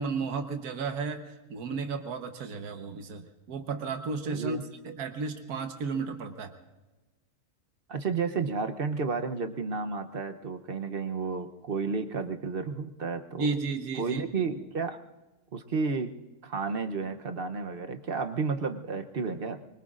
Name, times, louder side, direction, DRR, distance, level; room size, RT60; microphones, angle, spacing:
voice 1, 0.0-4.6 4.8-6.5 13.4-14.5, right 4 dB, 75° right, 6 dB, 1.6 m, -33 dB
voice 2, 4.2-4.6 7.9-13.5 14.0-15.0 15.5-16.1 16.4-19.6, right 4 dB, 45° right, 7 dB, 0.9 m, -32 dB
24.5 x 23.0 x 2.5 m, 1.1 s
omnidirectional pair, 1.6 m